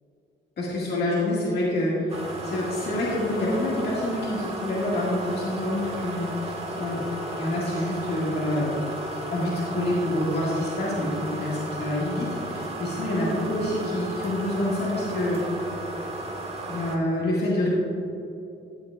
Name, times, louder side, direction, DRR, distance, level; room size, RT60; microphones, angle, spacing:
voice 1, 0.6-7.0 7.4-8.8 9.3-15.6 16.7-17.7, left 1 dB, 55° left, -6 dB, 2.0 m, -27 dB
sound 1, 2.1-17.0, right 1 dB, 30° right, 1.7 m, -34 dB
13.5 x 8.0 x 2.4 m, 2.8 s
cardioid pair, 90°, 20 cm